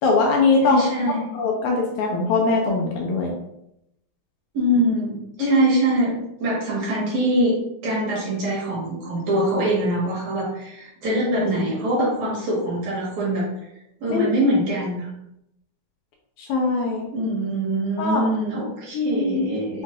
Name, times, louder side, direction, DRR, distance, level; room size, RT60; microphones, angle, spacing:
voice 1, 0.0-0.8 1.3-3.3 5.4-5.7 14.1-14.3 16.4-17.1 18.0-18.2 18.9-19.5, left 3 dB, 75° left, 0 dB, 1.9 m, -21 dB
voice 2, 0.6-1.4 4.5-6.1 6.4-7.5 7.8-13.4 14.0-15.1 17.1-19.8, right 1 dB, 65° right, -6 dB, 3.0 m, -23 dB
7.2 x 2.5 x 2.5 m, 0.82 s
omnidirectional pair, 3.6 m